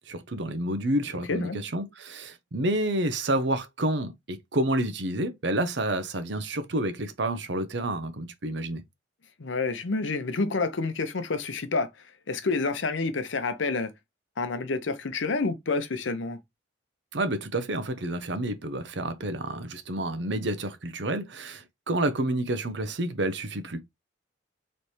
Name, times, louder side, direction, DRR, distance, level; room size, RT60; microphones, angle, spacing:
voice 1, 0.1-8.8 17.1-23.8, right 1 dB, 65° right, 0.7 m, -29 dB
voice 2, 1.3-1.6 9.4-11.9 12.3-13.9 14.4-16.4, left 3 dB, 75° left, 0.7 m, -28 dB
4.2 x 3.3 x 3.2 m
head